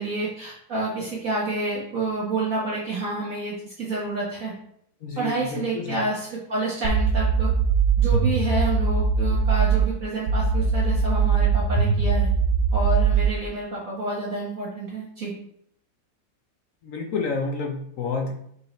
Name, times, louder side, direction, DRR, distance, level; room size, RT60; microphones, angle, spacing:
voice 1, 0.0-4.5 5.1-7.5 8.0-12.3 12.7-15.3, right 2 dB, 50° right, -6 dB, 1.6 m, -29 dB
voice 2, 5.0-6.0 16.8-18.3, left 4 dB, 60° left, 2 dB, 1.0 m, -29 dB
sound 1, 6.8-9.9 10.3-13.3, right 6 dB, 75° right, 1.5 m, -21 dB
5.6 x 4.8 x 4.0 m, 0.71 s
omnidirectional pair, 1.9 m